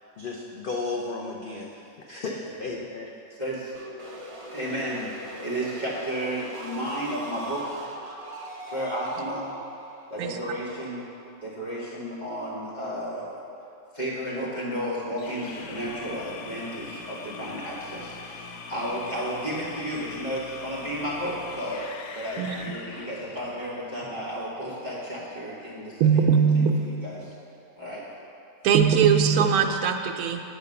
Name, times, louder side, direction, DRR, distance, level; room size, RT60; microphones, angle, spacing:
voice 1, 0.2-3.1, left 3 dB, 50° left, -2 dB, 0.6 m, -34 dB
voice 2, 3.4-3.7 4.5-5.1 5.4-7.8 8.7-9.5 10.1-11.0 11.4-13.3 13.9-27.3 27.8-28.1, equal, 30° left, -8 dB, 2.2 m, -33 dB
sound 1, 3.7-11.5, right 1 dB, 35° right, 0.6 m, -41 dB
sound 2, 15.2-23.7, left 4 dB, 80° left, 1.2 m, -41 dB
voice 3, 22.4-22.7 26.0-26.7 28.6-30.4, right 7 dB, 85° right, 5 dB, 1.1 m, -20 dB
8.8 x 4.9 x 6.7 m, 2.7 s
omnidirectional pair, 1.5 m